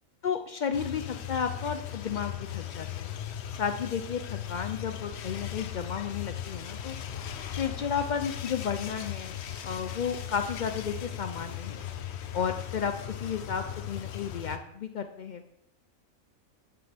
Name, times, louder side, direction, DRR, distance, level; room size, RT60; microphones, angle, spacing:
voice 1, 0.2-3.1 3.6-7.0 7.5-9.4 9.6-11.8 12.3-15.4, left 7 dB, 90° left, 7 dB, 0.4 m, -33 dB
sound 1, 0.7-14.6, left 10 dB, 60° left, 0.8 m, -38 dB
8.9 x 7.6 x 3.4 m, 0.79 s
omnidirectional pair, 1.5 m